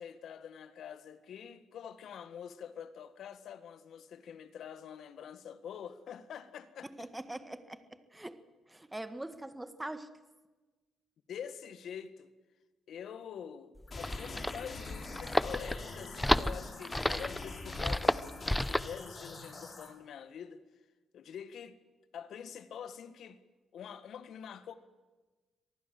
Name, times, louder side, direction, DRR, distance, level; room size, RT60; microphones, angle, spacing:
voice 1, 0.0-7.1 11.3-12.3 12.9-18.3 18.6-20.6 21.1-21.8 22.1-23.4 23.7-24.7, left 8 dB, 65° left, 12 dB, 1.7 m, -46 dB
voice 2, 7.0-8.4 8.7-10.1, right 1 dB, 10° right, 11 dB, 1.6 m, -43 dB
sound 1, 13.8-18.9, left 1 dB, 5° left, 0.7 m, -31 dB
sound 2, 13.9-19.9, left 3 dB, 40° left, 5.8 m, -44 dB
24.5 x 19.0 x 7.7 m, 1.2 s
cardioid pair, 90°, 0 cm